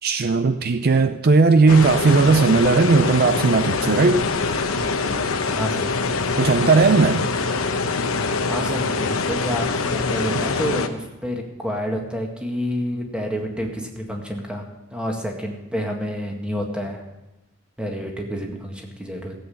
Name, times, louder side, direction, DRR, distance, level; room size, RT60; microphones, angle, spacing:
voice 1, 0.0-4.2 6.4-7.3, right 4 dB, 45° right, 10 dB, 0.5 m, -17 dB
sound 1, 1.7-10.9, left 4 dB, 75° left, 1.0 m, -24 dB
voice 2, 5.5-6.0 8.4-14.6 14.9-17.0 17.8-19.3, equal, 5° right, 1 dB, 1.8 m, -29 dB
15.5 x 8.2 x 7.0 m, 1.0 s
head